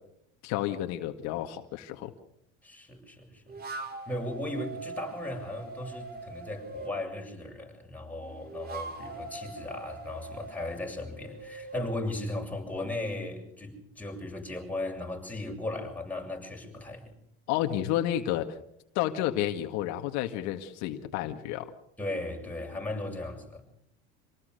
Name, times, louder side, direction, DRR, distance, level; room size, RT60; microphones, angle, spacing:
voice 1, 0.4-2.1 17.5-18.6 19.0-21.7, left 12 dB, 65° left, 5 dB, 2.0 m, -31 dB
voice 2, 2.6-3.6 4.1-17.1 22.0-23.6, left 1 dB, 5° left, 0 dB, 7.7 m, -37 dB
sound 1, 3.5-7.0 8.2-11.9, right 3 dB, 30° right, 5.5 m, -42 dB
28.0 x 19.0 x 6.7 m, 0.73 s
supercardioid pair, 110°, 30 cm